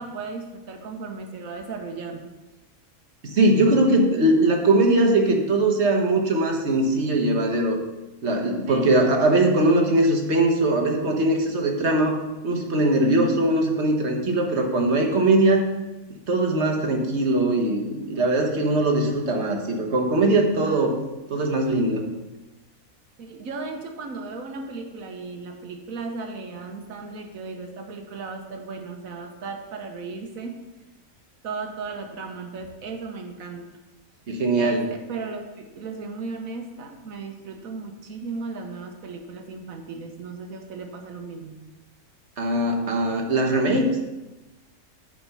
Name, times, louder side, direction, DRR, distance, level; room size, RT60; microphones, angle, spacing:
voice 1, 0.0-2.3 8.6-8.9 13.0-13.4 20.7-20.9 23.2-30.6 31.4-33.8 34.6-41.6, right 3 dB, 70° right, 4 dB, 1.5 m, -35 dB
voice 2, 3.2-7.8 8.2-12.2 12.4-15.6 16.1-20.9 21.3-22.1 34.3-34.9 42.4-44.0, right 2 dB, 50° right, 2 dB, 1.5 m, -21 dB
9.3 x 5.2 x 5.6 m, 1.1 s
omnidirectional pair, 1.5 m